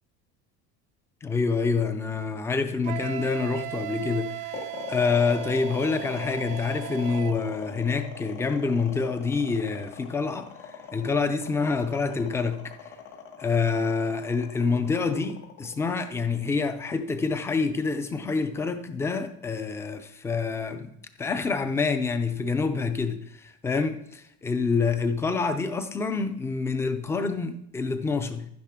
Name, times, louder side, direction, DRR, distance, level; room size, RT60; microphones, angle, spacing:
voice 1, 1.2-12.7 13.4-20.9 21.2-28.5, left 4 dB, 10° left, 0.3 m, -27 dB
Wind instrument woodwind instrument, 2.8-7.4, right 18 dB, 65° right, 0.6 m, -37 dB
sound 1, 4.5-16.8, left 7 dB, 60° left, 1.9 m, -41 dB
11.5 x 10.0 x 3.6 m
cardioid pair, 175°, 33 cm